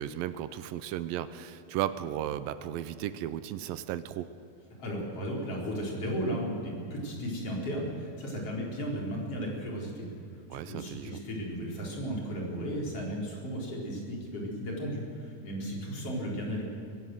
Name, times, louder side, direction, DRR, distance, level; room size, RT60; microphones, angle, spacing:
voice 1, 0.0-4.3 10.5-11.2, right 11 dB, 85° right, 13 dB, 2.4 m, -35 dB
voice 2, 4.8-10.0 10.5-16.6, equal, 40° left, -2 dB, 4.9 m, -35 dB
23.5 x 16.0 x 7.8 m, 2.6 s
omnidirectional pair, 4.2 m